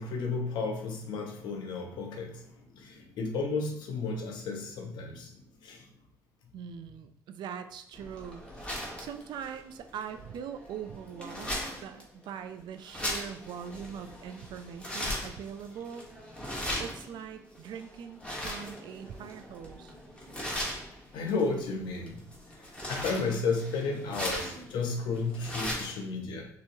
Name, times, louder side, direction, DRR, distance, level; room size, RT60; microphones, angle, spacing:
voice 1, 0.0-2.5 2.7-5.8 21.1-22.2 22.9-26.5, left 4 dB, 80° left, 3 dB, 0.9 m, -33 dB
voice 2, 6.5-8.4 8.7-16.1 16.8-19.9, right 8 dB, 80° right, 9 dB, 0.5 m, -42 dB
sound 1, 7.9-26.0, equal, 15° left, 1.6 m, -39 dB
6.1 x 3.1 x 2.8 m, 0.69 s
cardioid pair, 85°, 8 cm